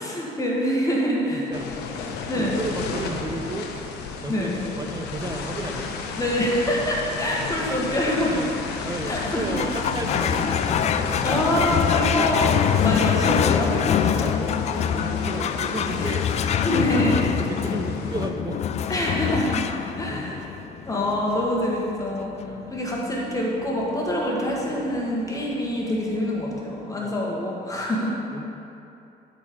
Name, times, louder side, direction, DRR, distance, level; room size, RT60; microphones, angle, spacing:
voice 1, 0.0-1.5 2.3-2.6 4.3-4.6 6.2-8.3 9.1-9.5 11.2-13.8 16.6-17.2 18.9-19.6 20.0-20.3 20.9-22.3 22.7-28.1, equal, 20° left, -3 dB, 1.3 m, -25 dB
voice 2, 1.3-1.7 2.3-3.7 4.2-6.2 7.6-8.5 8.8-11.2 14.1-16.3 17.1-18.7 20.1-20.9 22.5-22.8 26.9-27.2 27.7-27.9 28.3-28.5, right 3 dB, 20° right, 5 dB, 0.7 m, -34 dB
sound 1, 1.5-18.3, left 5 dB, 85° left, 0.8 m, -32 dB
sound 2, 9.5-26.3, left 8 dB, 40° left, 0.4 m, -26 dB
11.5 x 4.2 x 5.2 m, 2.8 s
cardioid pair, 110°, 17 cm